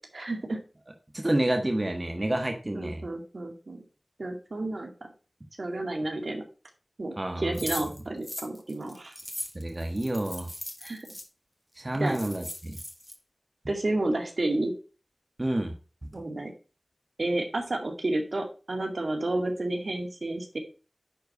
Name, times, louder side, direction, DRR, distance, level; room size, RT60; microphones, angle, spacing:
voice 1, 0.1-0.6 2.7-3.8 4.2-4.9 5.6-6.4 7.0-9.1 10.8-11.1 12.0-12.2 13.7-14.7 16.1-16.5 17.2-20.6, right 2 dB, 70° right, 3 dB, 2.1 m, -31 dB
voice 2, 1.1-3.0 7.2-7.6 9.5-10.5 11.8-12.8 15.4-15.7 16.0-16.1, right 1 dB, 40° right, 4 dB, 1.5 m, -29 dB
sound 1, 7.5-11.3 11.8-11.9 12.1-13.1, equal, 10° left, 2.0 m, -39 dB
10.5 x 4.6 x 5.4 m, 0.34 s
wide cardioid pair, 45°, 0 cm